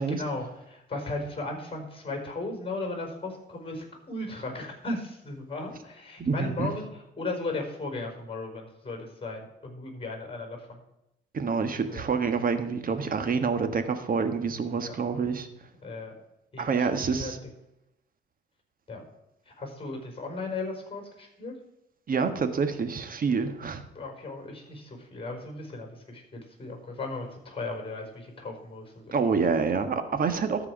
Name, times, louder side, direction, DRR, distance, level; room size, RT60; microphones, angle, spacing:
voice 1, 0.0-6.9 7.2-10.8 11.9-12.0 14.9-15.0 15.8-16.1 16.5-17.3 18.9-19.0 19.6-21.5 23.9-29.0, left 2 dB, 25° left, 3 dB, 4.7 m, -36 dB
voice 2, 6.2-6.7 11.3-15.5 16.6-17.4 22.1-23.8 29.1-30.7, right 5 dB, 45° right, 8 dB, 1.5 m, -27 dB
13.5 x 4.8 x 7.0 m, 0.87 s
cardioid pair, 90°, 20 cm